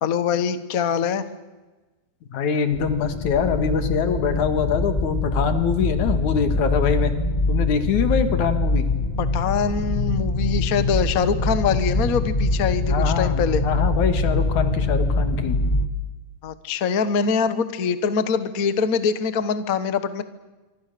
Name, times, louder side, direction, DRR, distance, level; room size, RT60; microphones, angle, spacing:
voice 1, 0.0-1.2 9.2-13.6 16.4-20.2, left 6 dB, 85° left, 12 dB, 0.7 m, -23 dB
voice 2, 2.3-7.1 7.5-8.9 12.9-15.6, left 6 dB, 65° left, 9 dB, 3.2 m, -24 dB
sound 1, 2.7-15.9, left 2 dB, 50° left, 0.5 m, -23 dB
26.5 x 24.5 x 6.8 m, 1.2 s
omnidirectional pair, 3.8 m